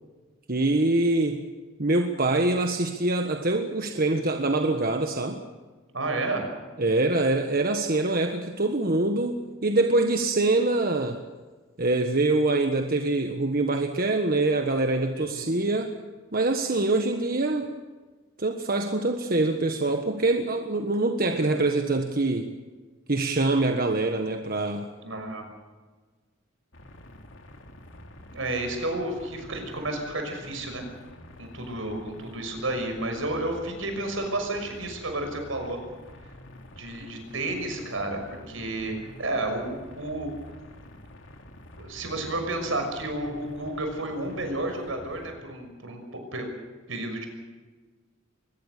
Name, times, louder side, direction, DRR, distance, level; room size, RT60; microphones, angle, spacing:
voice 1, 0.5-1.4 1.8-5.4 6.8-11.2 11.8-15.9 16.3-17.7 18.4-22.5 23.1-24.9, right 2 dB, 45° right, 5 dB, 1.5 m, -24 dB
voice 2, 5.9-6.4 15.1-15.5 25.0-25.5 28.3-30.8 31.4-35.8 36.8-38.2 38.5-40.3 41.8-46.5 46.9-47.3, right 2 dB, 75° right, 5 dB, 6.1 m, -31 dB
sound 1, 26.7-45.4, left 1 dB, 70° left, 3.0 m, -47 dB
23.5 x 21.0 x 6.8 m, 1.4 s
head